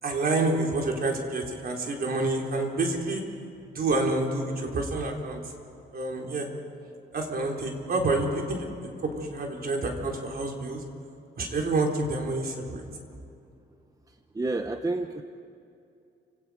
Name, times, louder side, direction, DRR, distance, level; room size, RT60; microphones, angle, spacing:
voice 1, 0.0-3.2 3.7-5.4 5.9-6.5 7.1-8.7 9.0-10.8 11.4-12.8, right 2 dB, 50° right, 1 dB, 4.0 m, -28 dB
voice 2, 14.3-15.2, right 2 dB, 15° right, 7 dB, 0.9 m, -29 dB
29.5 x 18.0 x 5.0 m, 2.6 s
cardioid pair, 90°, 20 cm